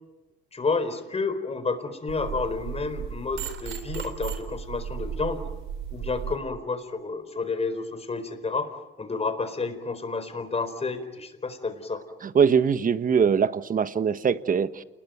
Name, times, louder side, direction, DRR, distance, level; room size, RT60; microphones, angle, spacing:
voice 1, 0.5-5.4 5.9-8.7 9.0-12.0, left 4 dB, 30° left, 9 dB, 4.4 m, -30 dB
sound 1, 2.1-6.4, right 8 dB, 85° right, 3.6 m, -35 dB
voice 2, 12.3-14.8, right 6 dB, 45° right, 13 dB, 1.3 m, -22 dB
29.0 x 20.5 x 9.3 m, 1.1 s
cardioid pair, 90°, 20 cm